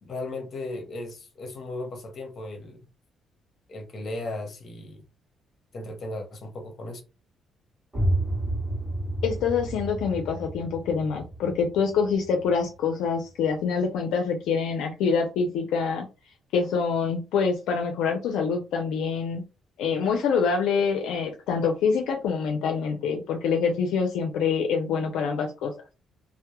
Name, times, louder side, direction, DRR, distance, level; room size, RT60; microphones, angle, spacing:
voice 1, 0.0-2.8 3.7-5.0 5.7-7.0, left 2 dB, 50° left, 0.8 m, -36 dB
sound 1, 7.9-13.5, right 1 dB, 20° right, 1.0 m, -31 dB
voice 2, 9.2-16.0 16.5-19.4 19.8-25.7, left 5 dB, 90° left, 0.4 m, -25 dB
2.2 x 2.0 x 2.9 m
cardioid pair, 90°, 0 cm